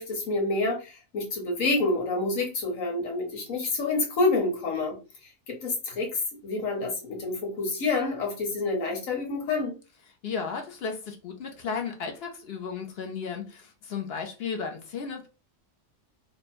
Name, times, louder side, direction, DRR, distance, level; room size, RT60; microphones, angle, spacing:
voice 1, 0.0-5.0 5.5-9.8, left 3 dB, 90° left, 1 dB, 1.6 m, -28 dB
voice 2, 10.2-15.3, left 5 dB, 55° left, 4 dB, 0.9 m, -34 dB
3.2 x 2.2 x 4.2 m, 0.32 s
omnidirectional pair, 1.4 m